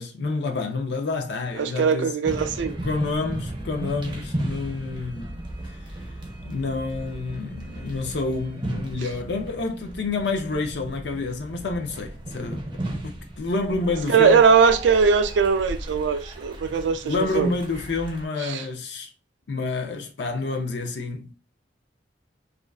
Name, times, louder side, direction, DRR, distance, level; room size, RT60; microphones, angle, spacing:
voice 1, 0.0-2.2 2.8-5.4 6.4-14.5 17.0-19.1 19.5-21.3, left 3 dB, 65° left, 0.5 m, -28 dB
voice 2, 1.6-2.8 14.1-17.5 18.5-18.6, right 5 dB, 85° right, 0.4 m, -20 dB
sound 1, 2.2-18.2, right 1 dB, 25° right, 0.5 m, -35 dB
2.4 x 2.3 x 2.2 m
head